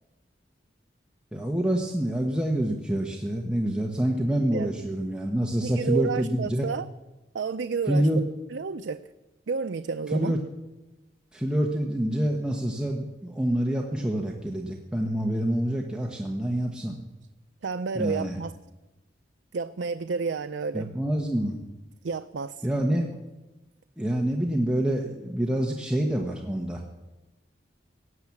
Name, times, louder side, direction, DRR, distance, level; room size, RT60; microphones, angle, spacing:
voice 1, 1.3-6.7 7.9-8.2 10.1-10.4 11.3-17.0 17.9-18.4 20.7-21.6 22.6-23.1 24.0-26.8, right 1 dB, 5° right, 0 dB, 1.1 m, -27 dB
voice 2, 5.6-6.9 7.3-8.1 8.5-9.0 9.5-10.4 17.6-18.5 19.5-20.9 22.0-22.7, right 5 dB, 85° right, 10 dB, 0.5 m, -30 dB
17.0 x 9.8 x 7.2 m, 1.1 s
head